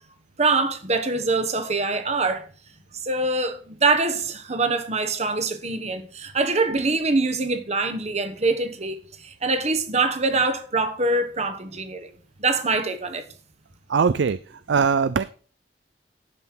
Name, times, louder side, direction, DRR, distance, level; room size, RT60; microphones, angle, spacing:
voice 1, 0.4-2.5 2.9-12.1 12.4-13.3, right 3 dB, 35° right, 1.3 m, -24 dB
voice 2, 13.9-15.3, right 5 dB, 75° right, 0.5 m, -21 dB
11.5 x 5.7 x 6.0 m
head